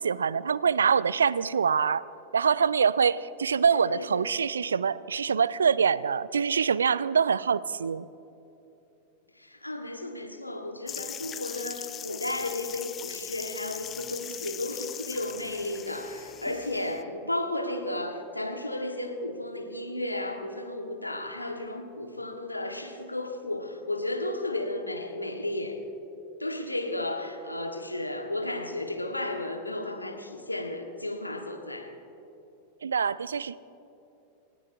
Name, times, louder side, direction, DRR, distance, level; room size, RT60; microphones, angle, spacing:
voice 1, 0.0-2.0 2.3-8.1 32.8-33.6, right 6 dB, 70° right, 19 dB, 0.4 m, -25 dB
voice 2, 3.7-4.3 9.3-25.8 26.4-31.9, left 1 dB, 85° left, 4 dB, 1.5 m, -33 dB
sound 1, 10.9-17.0, left 9 dB, 25° left, 0.5 m, -40 dB
29.0 x 17.5 x 2.7 m, 2.9 s
figure-of-eight pair, 90°, 0 cm